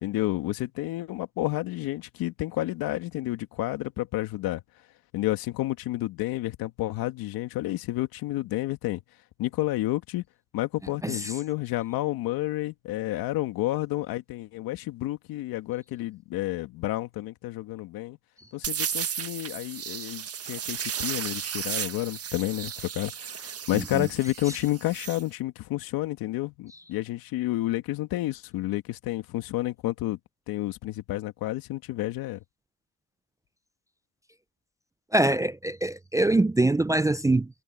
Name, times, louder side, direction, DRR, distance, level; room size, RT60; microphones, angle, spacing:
voice 1, 0.0-4.6 5.1-9.0 9.4-10.2 10.5-18.2 18.5-30.2 30.5-32.4, left 17 dB, 75° left, 2.3 m, -30 dB
sound 1, 18.6-25.2, right 8 dB, 40° right, 1.5 m, -34 dB
voice 2, 23.7-24.1 35.1-37.5, right 2 dB, 10° right, 0.5 m, -24 dB
supercardioid pair, 80°, 36 cm